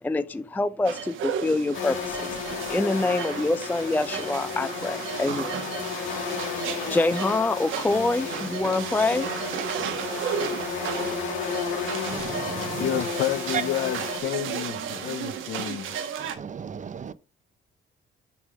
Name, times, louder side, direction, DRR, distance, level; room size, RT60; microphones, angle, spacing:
voice 1, 0.0-9.3, left 2 dB, 10° left, 0.4 m, -26 dB
sound 1, 0.9-16.4, right 8 dB, 80° right, 1.2 m, -34 dB
sound 2, 1.7-14.2, left 6 dB, 90° left, 2.3 m, -33 dB
voice 2, 12.1-13.0 13.5-13.6 14.9-15.1 16.2-17.1, right 7 dB, 40° right, 0.7 m, -34 dB
voice 3, 12.8-15.9, left 11 dB, 65° left, 0.7 m, -29 dB
6.9 x 3.7 x 6.1 m
cardioid pair, 90°, 20 cm